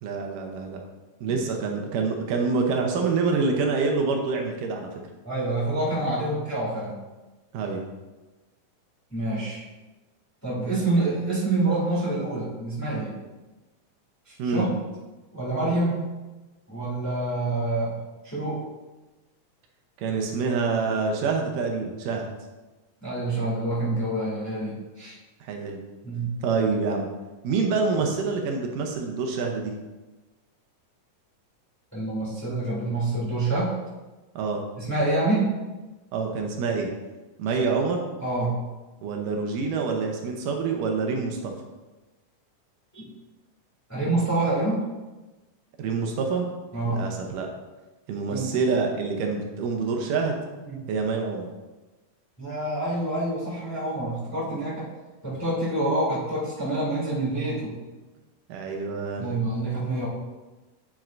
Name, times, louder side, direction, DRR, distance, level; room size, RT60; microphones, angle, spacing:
voice 1, 0.0-0.8 1.2-4.9 7.5-7.8 14.4-14.7 20.0-22.3 25.4-25.8 26.4-27.1 27.4-29.7 34.4-34.6 36.1-36.9 37.4-38.0 39.0-41.5 45.8-46.5 46.9-47.5 48.1-50.4 50.9-51.5 58.5-59.3, right 4 dB, 80° right, 2 dB, 2.4 m, -26 dB
voice 2, 5.2-6.9 9.1-9.6 10.4-13.1 14.3-14.7 15.3-16.1 16.7-18.0 18.2-18.6 23.0-25.2 26.0-26.4 31.9-33.7 34.8-35.6 38.2-38.5 42.9-43.1 43.9-44.8 46.7-47.0 48.3-48.6 50.7-50.8 52.4-54.9 55.2-57.7 59.2-60.1, right 2 dB, 5° left, -7 dB, 2.0 m, -27 dB
9.1 x 7.4 x 2.5 m, 1.1 s
omnidirectional pair, 3.8 m